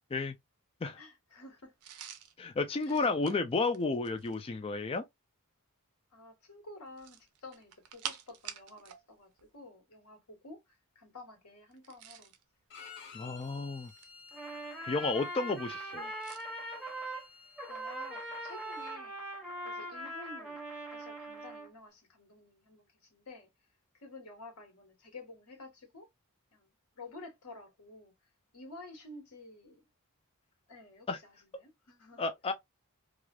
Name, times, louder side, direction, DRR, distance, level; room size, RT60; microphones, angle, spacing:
voice 1, 1.0-1.7 2.8-3.4 6.1-12.3 17.7-19.2 19.6-20.6 20.9-23.5 23.9-26.1 26.5-28.1 28.5-29.8 30.7-32.2, left 2 dB, 85° left, 1.6 m, -51 dB
sound 1, 1.8-4.5 6.9-9.0 9.3-9.5 11.7-12.4 13.2-14.3 16.2-16.5, right 9 dB, 80° right, 0.6 m, -47 dB
voice 2, 2.4-5.0 13.1-13.9 14.9-16.1 31.1-31.2 32.2-32.5, left 3 dB, 25° left, 0.3 m, -32 dB
Bowed string instrument, 12.7-19.0, left 6 dB, 55° left, 1.1 m, -54 dB
Trumpet, 14.3-17.3 17.6-21.7, right 1 dB, 5° right, 1.3 m, -41 dB
3.2 x 2.4 x 2.3 m
head